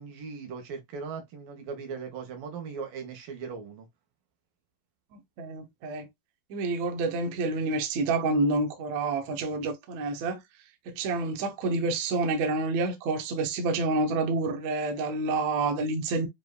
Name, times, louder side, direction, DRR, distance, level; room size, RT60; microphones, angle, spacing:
voice 1, 0.0-3.9, right 5 dB, 85° right, 2.8 m, -39 dB
voice 2, 5.1-6.1 6.5-10.4 10.9-16.3, right 3 dB, 70° right, 1.9 m, -28 dB
7.5 x 2.5 x 2.2 m
omnidirectional pair, 3.8 m